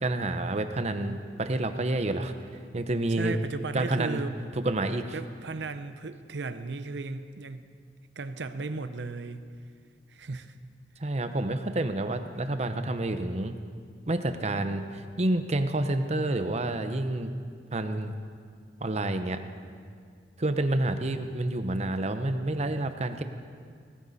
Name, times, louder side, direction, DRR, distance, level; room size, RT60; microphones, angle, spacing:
voice 1, 0.0-2.3 2.7-3.4 3.7-4.2 4.6-5.1 11.0-13.5 14.1-17.3 17.7-18.1 18.8-19.4 20.4-23.2, right 2 dB, 40° right, 8 dB, 0.8 m, -29 dB
voice 2, 3.1-4.4 5.1-7.6 8.2-9.5 10.1-10.6, right 3 dB, 80° right, 11 dB, 0.7 m, -36 dB
18.5 x 15.0 x 4.1 m, 2.1 s
head